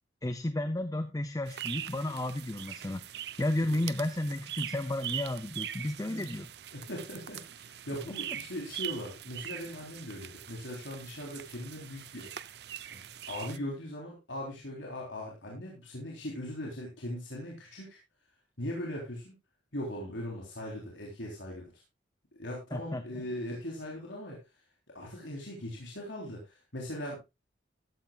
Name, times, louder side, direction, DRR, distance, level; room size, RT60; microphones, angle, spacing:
voice 1, 0.2-3.0 3.4-6.5 22.7-23.2, left 1 dB, 20° left, 11 dB, 0.6 m, -32 dB
sound 1, 1.5-13.6, right 11 dB, 60° right, 0.6 m, -42 dB
voice 2, 6.7-12.3 12.9-18.0 18.6-19.3 19.7-21.7 22.4-24.4 24.9-27.2, left 1 dB, 75° left, -2 dB, 3.7 m, -40 dB
15.0 x 12.5 x 2.4 m, 0.24 s
head